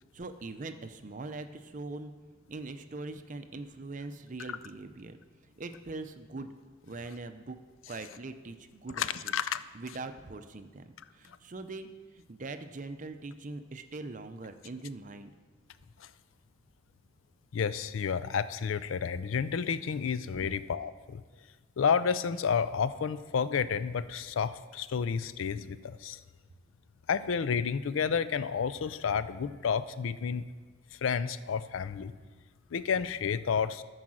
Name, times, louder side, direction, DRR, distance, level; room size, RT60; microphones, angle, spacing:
voice 1, 0.1-2.1 2.5-5.2 5.6-6.5 6.8-7.6 7.9-9.3 9.7-11.9 12.1-15.3, right 3 dB, 40° right, 9 dB, 0.5 m, -42 dB
voice 2, 9.0-9.6 16.0-16.1 17.5-21.2 21.8-26.2 27.1-30.5 30.9-32.1 32.7-33.8, left 6 dB, 75° left, 14 dB, 0.4 m, -30 dB
13.5 x 4.8 x 6.2 m, 1.4 s
head